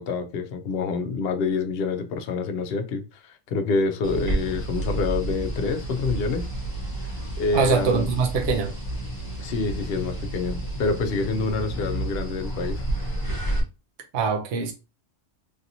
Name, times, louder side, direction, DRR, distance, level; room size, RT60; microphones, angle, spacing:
voice 1, 0.0-6.5 7.4-8.1 9.4-12.9, left 4 dB, 60° left, 0.8 m, -27 dB
sound 1, 4.0-13.6, right 1 dB, 20° left, 0.6 m, -30 dB
voice 2, 7.5-8.7 14.1-14.7, right 5 dB, 65° right, 0.9 m, -23 dB
3.3 x 2.8 x 2.6 m
omnidirectional pair, 1.3 m